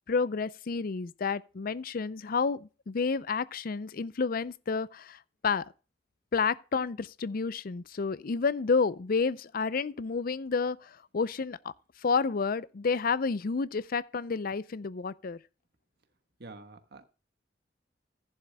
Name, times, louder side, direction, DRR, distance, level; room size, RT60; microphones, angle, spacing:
voice 1, 0.1-5.6 6.3-11.7 12.0-15.4, left 5 dB, 55° left, 0.5 m, -30 dB
voice 2, 16.4-17.0, right 3 dB, 65° right, 1.2 m, -47 dB
14.5 x 11.0 x 2.2 m
head